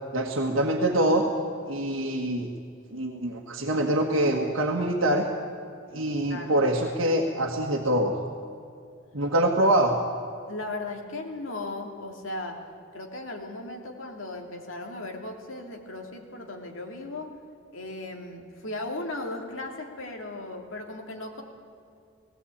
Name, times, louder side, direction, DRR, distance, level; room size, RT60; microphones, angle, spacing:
voice 1, 0.1-1.3 1.7-2.5 2.9-5.3 5.9-8.2 9.1-9.9, right 1 dB, 70° right, 0 dB, 1.7 m, -24 dB
voice 2, 10.5-12.6 12.9-17.3 17.7-21.4, left 2 dB, 70° left, 2 dB, 3.0 m, -37 dB
19.0 x 17.5 x 8.7 m, 2.5 s
head